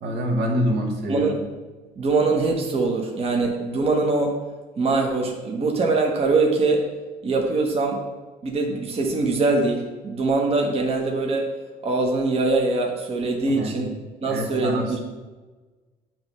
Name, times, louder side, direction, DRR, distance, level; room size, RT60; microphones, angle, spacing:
voice 1, 0.0-1.4 13.5-13.9 14.3-15.0, equal, 75° right, 0 dB, 1.3 m, -26 dB
voice 2, 1.1-1.4 2.0-4.4 4.8-6.9 7.2-8.0 8.4-11.5 11.8-13.9 14.2-15.0, right 3 dB, 35° right, 1 dB, 0.9 m, -23 dB
8.8 x 3.1 x 5.3 m, 1.3 s
cardioid pair, 110°, 17 cm